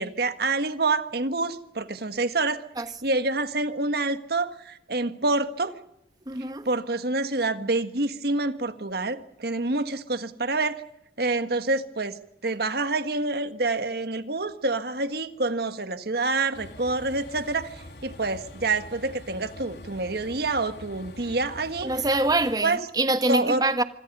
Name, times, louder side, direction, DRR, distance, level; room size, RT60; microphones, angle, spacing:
voice 1, 0.0-2.6 3.0-5.7 6.6-10.8 11.2-21.9 22.6-22.8 23.3-23.6, right 3 dB, 60° right, 1.6 m, -27 dB
voice 2, 6.3-6.7 21.8-23.8, right 2 dB, 20° right, 1.4 m, -25 dB
Train, 16.5-22.5, left 1 dB, 65° left, 3.7 m, -44 dB
26.0 x 25.5 x 5.5 m
head